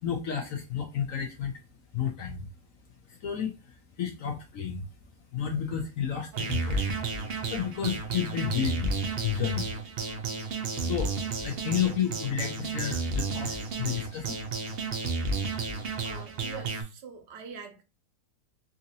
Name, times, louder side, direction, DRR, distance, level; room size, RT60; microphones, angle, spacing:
voice 1, 0.0-1.6 1.9-2.5 3.1-4.9 5.3-10.5 10.7-11.1 11.4-14.7, left 8 dB, 65° left, 0.8 m, -32 dB
sound 1, 6.3-16.8, right 3 dB, 60° right, 0.6 m, -32 dB
voice 2, 16.0-17.8, right 6 dB, 75° right, 1.4 m, -43 dB
3.9 x 2.5 x 2.6 m
omnidirectional pair, 1.9 m